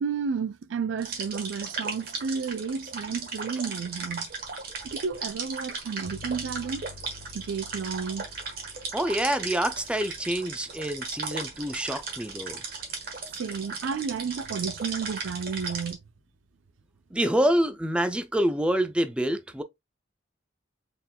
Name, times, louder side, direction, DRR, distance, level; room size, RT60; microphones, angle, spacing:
voice 1, 0.0-4.3 4.8-6.8 7.3-8.3 13.4-16.0, right 6 dB, 90° right, 0.4 m, -32 dB
sound 1, 1.0-15.9, right 4 dB, 55° right, 1.3 m, -37 dB
sound 2, 6.0-15.3, left 3 dB, 55° left, 1.2 m, -51 dB
voice 2, 8.9-12.6 17.1-19.6, right 1 dB, 5° right, 0.3 m, -26 dB
4.3 x 3.7 x 2.2 m
head